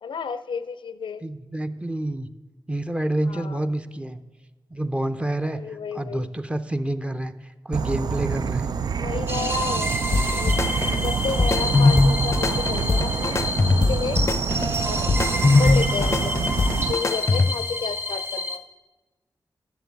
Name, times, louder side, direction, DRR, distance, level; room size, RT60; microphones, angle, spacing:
voice 1, 0.0-1.2 3.3-3.7 5.5-6.3 9.0-10.0 10.3-10.6 11.0-13.4 13.9-14.2 14.8-15.1 15.6-16.3 16.9-18.6, left 6 dB, 85° left, 14 dB, 0.6 m, -31 dB
voice 2, 1.2-2.3 2.7-4.2 4.7-8.7 16.0-16.5, right 1 dB, 15° right, 9 dB, 0.7 m, -28 dB
Insect / Frog, 7.7-16.9, right 6 dB, 55° right, 0.4 m, -27 dB
sound 1, 9.3-18.6, left 1 dB, 30° right, 1.2 m, -29 dB
sound 2, 10.1-17.7, left 3 dB, 35° left, 0.5 m, -22 dB
11.5 x 7.2 x 8.2 m, 1.2 s
wide cardioid pair, 95°, 8 cm